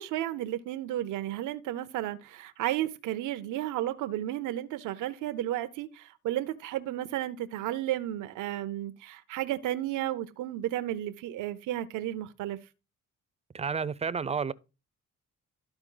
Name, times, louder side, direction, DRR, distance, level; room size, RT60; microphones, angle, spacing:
voice 1, 0.0-12.6, right 13 dB, 90° right, 0.6 m, -33 dB
voice 2, 13.5-14.5, right 5 dB, 20° right, 0.4 m, -30 dB
12.5 x 4.5 x 3.8 m
cardioid pair, 90°, 30 cm